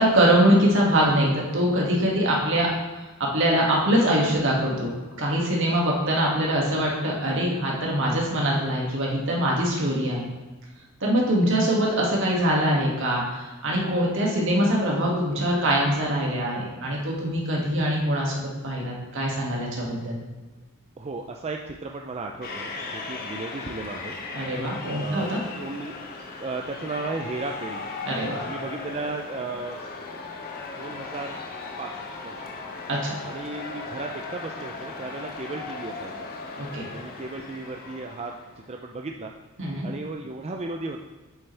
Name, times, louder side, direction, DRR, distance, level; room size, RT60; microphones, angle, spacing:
voice 1, 0.0-2.7 3.2-10.3 11.0-20.2 24.3-25.4 28.0-28.4 32.9-33.2 36.6-36.9 39.6-39.9, right 1 dB, 60° right, -3 dB, 2.1 m, -23 dB
voice 2, 21.0-24.2 25.0-25.3 25.6-27.8 28.4-29.9 30.8-31.4 31.8-31.9 32.2-32.5 33.2-36.3 36.9-38.4 38.7-39.3 39.8-41.0, right 3 dB, 30° right, 2 dB, 0.5 m, -35 dB
sound 1, 22.4-38.6, left 3 dB, 45° left, 1.1 m, -37 dB
8.1 x 7.7 x 3.4 m, 1.2 s
head